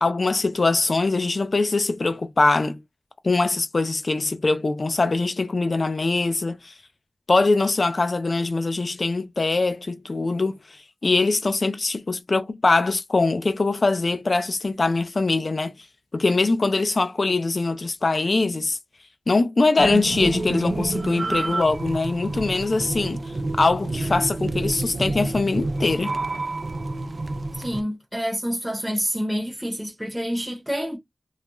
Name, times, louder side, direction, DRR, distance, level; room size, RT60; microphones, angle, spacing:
voice 1, 0.0-2.8 3.2-6.7 7.3-10.6 11.0-15.8 16.1-18.8 19.3-23.2 23.6-26.2, left 3 dB, 65° left, 0.4 m, -22 dB
sound 1, 19.8-27.8, right 2 dB, 60° right, 0.4 m, -28 dB
voice 2, 27.6-31.0, equal, 5° right, 0.7 m, -28 dB
2.3 x 2.2 x 2.9 m
wide cardioid pair, 55°, 0 cm